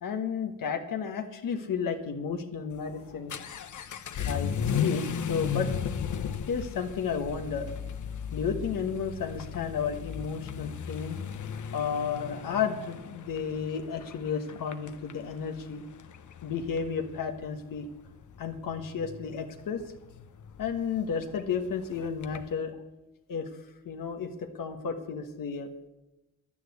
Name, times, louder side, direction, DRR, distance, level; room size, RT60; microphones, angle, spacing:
voice 1, 0.0-3.3 4.2-4.5 4.8-5.7 6.5-7.7 8.3-11.2 11.7-15.8 16.4-17.9 18.4-19.8 20.6-22.8 23.3-23.5 23.8-25.7, left 6 dB, 80° left, 4 dB, 1.3 m, -32 dB
Vehicle / Accelerating revving vroom, 2.7-22.5, left 7 dB, 65° left, 0.9 m, -36 dB
10.5 x 10.0 x 8.1 m, 1.0 s
cardioid pair, 60°, 33 cm